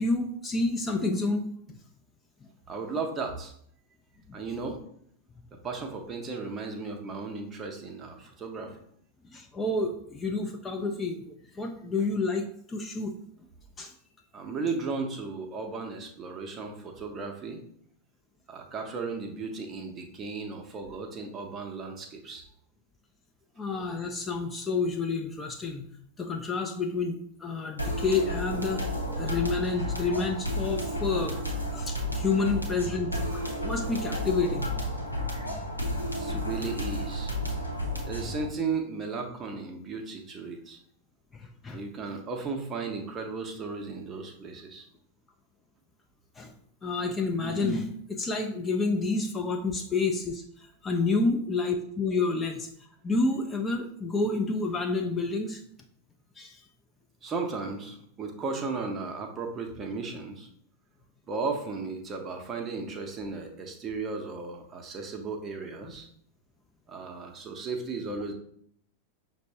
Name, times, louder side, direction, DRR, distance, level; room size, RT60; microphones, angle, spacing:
voice 1, 0.0-1.5 4.3-4.4 9.2-13.1 13.8-13.9 23.6-25.9 26.2-28.9 29.2-31.4 31.7-34.7 36.3-36.4 41.3-41.8 46.4-46.5 46.8-52.7 53.0-55.6 56.4-56.6, left 3 dB, 15° left, 3 dB, 0.4 m, -29 dB
voice 2, 2.7-3.5 4.3-4.8 5.5-8.8 14.3-17.6 18.5-22.4 36.2-37.3 37.7-40.8 41.7-44.9 57.2-60.5 61.3-66.1 66.9-68.3, right 4 dB, 25° right, 4 dB, 0.6 m, -35 dB
sound 1, 27.8-38.5, equal, 90° left, 0.7 m, -32 dB
5.9 x 2.0 x 2.7 m, 0.65 s
figure-of-eight pair, 90°, 0 cm